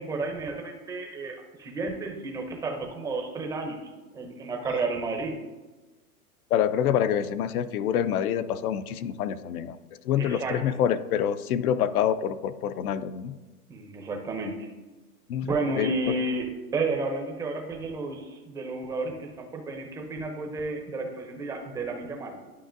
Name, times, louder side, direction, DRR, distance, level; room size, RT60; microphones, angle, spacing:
voice 1, 0.0-3.8 4.1-5.4 10.2-10.8 13.7-14.7 15.4-22.4, right 3 dB, 10° right, 3 dB, 0.5 m, -32 dB
voice 2, 6.5-9.8 10.0-13.3 15.3-15.5 15.8-16.2, left 9 dB, 70° left, 13 dB, 0.6 m, -26 dB
11.5 x 5.2 x 2.5 m, 1.2 s
hypercardioid pair, 140°, 45 cm